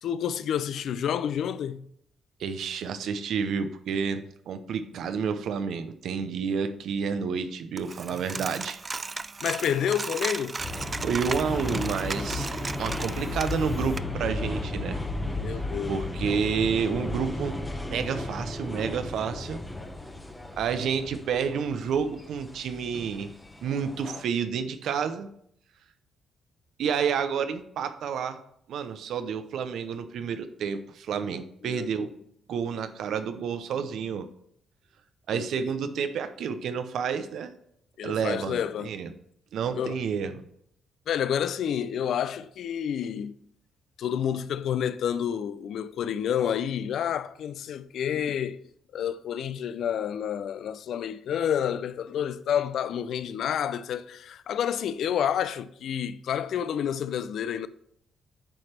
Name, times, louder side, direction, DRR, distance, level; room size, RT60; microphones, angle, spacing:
voice 1, 0.0-1.9 8.1-8.5 9.4-10.6 15.3-16.0 31.6-32.1 35.3-35.6 38.0-38.9 39.7-40.0 41.1-43.3 44.0-48.6 48.9-57.7, left 9 dB, 70° left, 0.4 m, -29 dB
voice 2, 2.4-8.8 11.0-15.0 15.9-17.6 17.9-19.6 20.5-23.3 23.6-25.3 26.8-28.4 28.7-32.1 32.5-34.3 35.3-37.5 38.0-39.1 39.5-40.4, right 6 dB, 70° right, 0.7 m, -30 dB
Coin (dropping), 7.8-14.0, right 4 dB, 30° right, 0.3 m, -36 dB
sound 1, 10.6-24.2, left 2 dB, 15° left, 0.9 m, -34 dB
8.8 x 3.3 x 5.9 m
cardioid pair, 90°, 0 cm